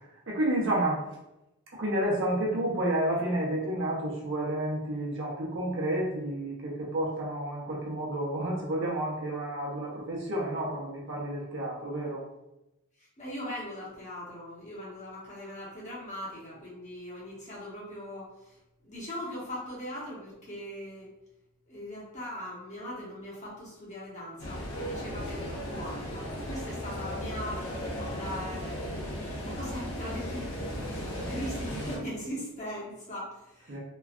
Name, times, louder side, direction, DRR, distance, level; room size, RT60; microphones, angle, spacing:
voice 1, 0.3-1.0 1.8-12.3 33.7-33.8, right 1 dB, 60° right, -3 dB, 0.8 m, -30 dB
voice 2, 13.0-18.6 18.8-21.1 21.7-27.7 28.1-30.6 31.3-33.8, equal, 35° left, -6 dB, 1.0 m, -40 dB
sound 1, 24.4-32.0, equal, 90° left, 1.0 m, -36 dB
3.1 x 2.3 x 2.4 m, 0.91 s
head